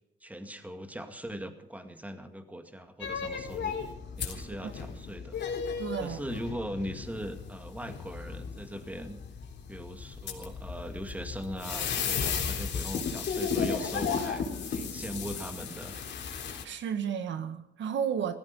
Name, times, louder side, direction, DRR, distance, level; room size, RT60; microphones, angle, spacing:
voice 1, 0.2-3.8 4.2-5.4 6.0-9.2 9.7-16.0, equal, 5° right, 2.2 m, -40 dB
sound 1, 3.0-16.6, left 6 dB, 65° left, 3.7 m, -35 dB
voice 2, 5.8-6.2 16.6-18.3, right 8 dB, 70° right, 1.6 m, -33 dB
17.0 x 15.0 x 5.4 m
cardioid pair, 90°, 20 cm